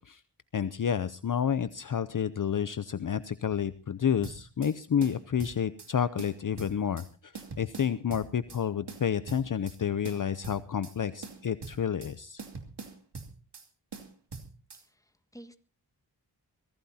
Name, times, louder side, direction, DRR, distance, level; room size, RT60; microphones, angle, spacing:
voice 1, 0.5-12.4, left 8 dB, 45° left, 14 dB, 0.7 m, -30 dB
sound 1, 4.2-4.7 5.0-5.9 6.2-7.1 7.3-8.6 8.9-9.8 10.0-10.9 11.2-12.1 12.4-13.7 13.9-14.8, right 4 dB, 65° right, 2.7 m, -43 dB
voice 2, 14.8-15.6, right 1 dB, 10° left, 9 dB, 1.6 m, -52 dB
23.0 x 16.0 x 2.8 m, 0.34 s
cardioid pair, 60°, 43 cm